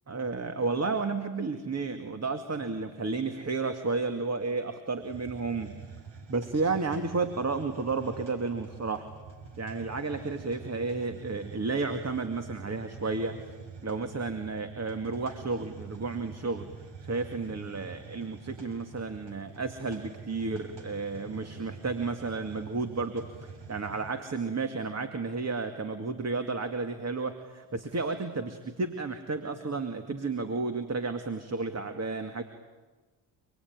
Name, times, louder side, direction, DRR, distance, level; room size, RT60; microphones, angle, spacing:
voice 1, 0.1-5.8 6.3-9.0 9.6-13.6 13.8-16.7 17.0-32.4, right 3 dB, 30° right, 7 dB, 2.4 m, -32 dB
Hiss, 5.0-24.2, right 5 dB, 55° right, 5.7 m, -46 dB
29.0 x 21.0 x 9.7 m, 1.3 s
supercardioid pair, 70°, 50 cm